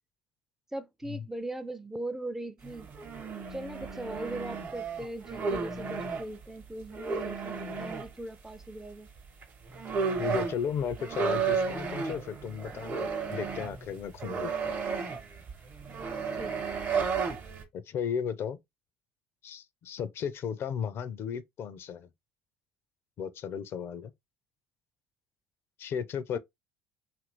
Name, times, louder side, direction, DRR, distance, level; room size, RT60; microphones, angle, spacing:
voice 1, 0.7-2.9 3.5-9.1 16.4-16.6, right 1 dB, 10° right, 0.4 m, -39 dB
sound 1, 2.6-6.2 6.9-8.1 9.4-9.5 9.7-17.6, right 5 dB, 45° right, 1.1 m, -33 dB
voice 2, 10.2-14.7 17.7-18.6 19.4-22.1 23.2-24.1 25.8-26.4, left 7 dB, 50° left, 0.4 m, -35 dB
2.9 x 2.5 x 2.9 m
hypercardioid pair, 65°, 5 cm